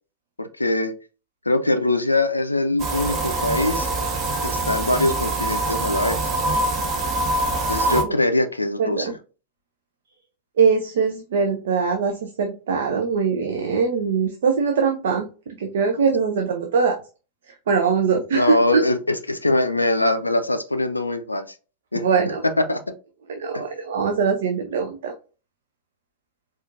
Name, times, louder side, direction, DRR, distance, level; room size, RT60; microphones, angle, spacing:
voice 1, 0.4-0.9 1.5-3.9 4.4-6.2 7.7-9.2 18.3-21.4 21.9-22.1 22.4-22.8 23.5-23.6, left 2 dB, 85° left, 9 dB, 0.3 m, -22 dB
sound 1, 2.8-8.0, right 2 dB, 30° right, 0.8 m, -24 dB
voice 2, 8.8-9.1 10.6-15.3 15.6-16.9 17.7-18.8 21.9-22.4 23.3-25.1, right 5 dB, 60° right, 5 dB, 0.4 m, -22 dB
4.3 x 2.4 x 2.5 m, 0.35 s
figure-of-eight pair, 90°, 0 cm